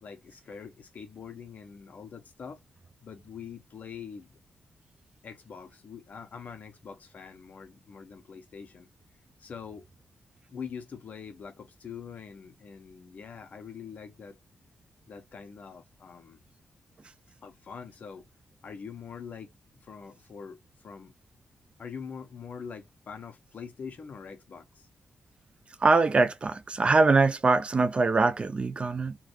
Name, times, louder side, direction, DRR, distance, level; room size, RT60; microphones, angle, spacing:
voice 1, 0.0-2.6 3.0-4.4 5.2-8.9 9.4-9.8 10.5-14.4 15.1-16.4 17.4-18.2 18.6-19.5 19.8-20.6 20.8-21.1 21.8-24.9, left 6 dB, 55° left, 1.2 m, -44 dB
voice 2, 25.8-29.2, right 3 dB, 35° right, 0.4 m, -23 dB
3.6 x 3.2 x 3.1 m
cardioid pair, 105°, 3 cm